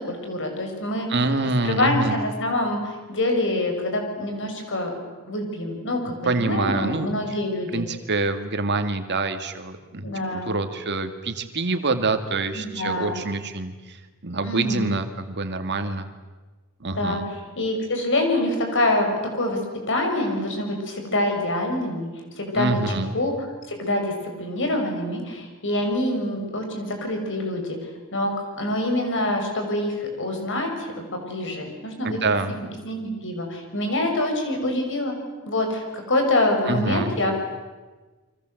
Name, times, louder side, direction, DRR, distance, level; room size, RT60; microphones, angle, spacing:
voice 1, 0.0-1.1 1.6-4.9 5.3-7.8 10.0-10.5 12.5-13.2 14.4-15.0 16.8-17.2 17.6-19.6 19.9-22.1 22.4-22.8 23.1-23.3 23.7-24.1 24.4-27.8 28.1-30.7 31.1-32.2 32.8-35.2 35.4-37.3, left 1 dB, 60° left, 4 dB, 6.5 m, -25 dB
voice 2, 1.1-2.2 6.2-7.4 7.7-16.1 16.8-17.2 22.5-23.2 32.0-32.5 36.7-37.2, right 3 dB, 50° right, 8 dB, 2.3 m, -26 dB
29.5 x 24.5 x 8.0 m, 1.3 s
head